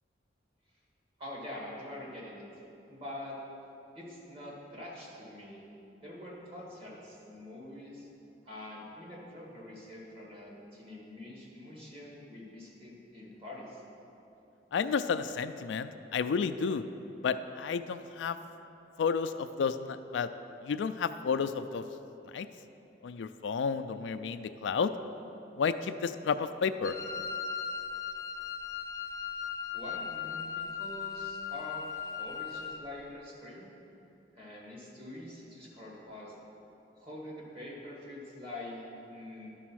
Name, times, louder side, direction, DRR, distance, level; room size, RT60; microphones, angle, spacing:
voice 1, 1.2-2.5 2.9-3.4 3.9-5.6 6.0-8.1 8.4-13.8 29.0-29.1 29.7-33.7 34.3-36.3 37.0-39.5, left 1 dB, 30° right, -5 dB, 2.1 m, -45 dB
voice 2, 14.7-16.8 17.2-18.4 19.0-20.3 20.7-21.8 22.3-22.5 23.0-24.9 25.6-26.9, left 6 dB, 90° left, 11 dB, 0.4 m, -31 dB
Wind instrument woodwind instrument, 26.8-32.9, left 7 dB, 20° left, 0.4 m, -38 dB
12.0 x 4.1 x 6.2 m, 3.0 s
head